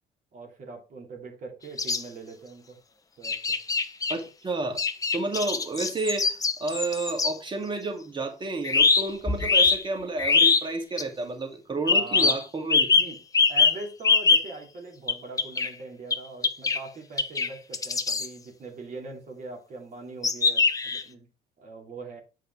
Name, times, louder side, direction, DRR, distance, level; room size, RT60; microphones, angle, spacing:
voice 1, 0.3-2.8 3.2-3.6 11.9-12.4 13.0-13.2 13.5-21.3 21.6-22.2, right 3 dB, 50° right, 2.9 m, -42 dB
sound 1, 1.8-2.0 3.2-4.2 4.8-7.3 8.6-9.8 10.2-10.6 11.0-11.1 11.9-12.4 12.7-14.5 15.1-15.7 16.1-16.2 16.4-16.8 17.2-17.5 17.7-18.3 20.2-21.0, left 4 dB, 20° left, 0.9 m, -22 dB
voice 2, 4.1-4.8 5.1-12.9, right 3 dB, 30° right, 2.3 m, -31 dB
8.4 x 4.9 x 4.6 m
cardioid pair, 110°, 17 cm